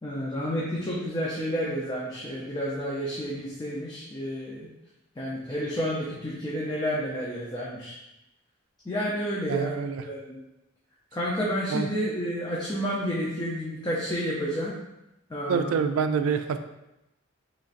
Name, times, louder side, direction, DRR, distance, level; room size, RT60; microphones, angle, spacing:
voice 1, 0.0-4.7 5.2-7.9 8.9-9.7 10.0-10.4 11.1-14.8 15.3-15.8, equal, 20° left, -6 dB, 0.5 m, -30 dB
voice 2, 9.5-10.0 11.7-11.9 15.5-16.6, right 6 dB, 90° right, 9 dB, 0.3 m, -26 dB
3.8 x 3.1 x 2.5 m, 0.90 s
head